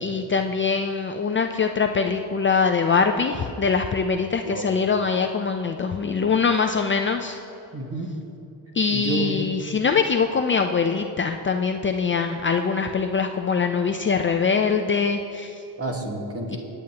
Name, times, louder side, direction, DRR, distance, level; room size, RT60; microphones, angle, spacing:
voice 1, 0.0-7.4 8.7-15.6 16.5-16.6, left 5 dB, 30° left, 5 dB, 0.4 m, -23 dB
voice 2, 7.7-8.1 8.9-9.3 15.8-16.6, right 2 dB, 35° right, 1 dB, 1.8 m, -29 dB
21.5 x 9.1 x 2.9 m, 2.8 s
cardioid pair, 110°, 42 cm